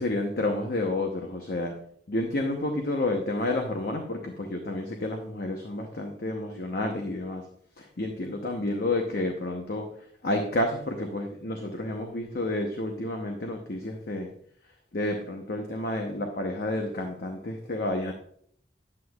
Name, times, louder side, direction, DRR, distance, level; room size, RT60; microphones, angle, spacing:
voice 1, 0.0-1.7 2.1-7.5 7.8-9.9 10.2-14.3 14.9-18.1, left 2 dB, 50° left, 3 dB, 0.8 m, -30 dB
9.4 x 8.4 x 2.3 m, 0.64 s
head